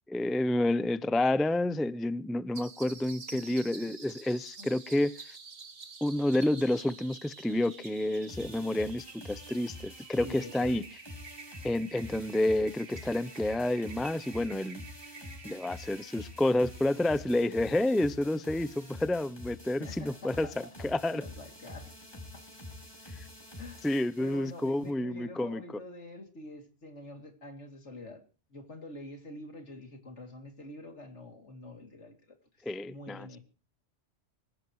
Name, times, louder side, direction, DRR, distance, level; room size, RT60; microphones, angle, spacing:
voice 1, 0.1-5.4 6.0-10.8 11.6-14.8 15.4-21.2 23.1-23.2 23.8-25.6 32.6-33.4, left 1 dB, ahead, 0.3 m, -29 dB
sound 1, 2.5-17.8, right 4 dB, 65° right, 1.9 m, -49 dB
sound 2, 8.3-24.9, left 1 dB, 20° left, 5.7 m, -47 dB
voice 2, 10.2-10.9 19.7-20.7 21.1-22.5 23.6-23.9 24.2-28.2 28.5-32.4 32.8-33.4, left 2 dB, 80° left, 3.1 m, -46 dB
25.5 x 15.5 x 3.1 m
omnidirectional pair, 1.2 m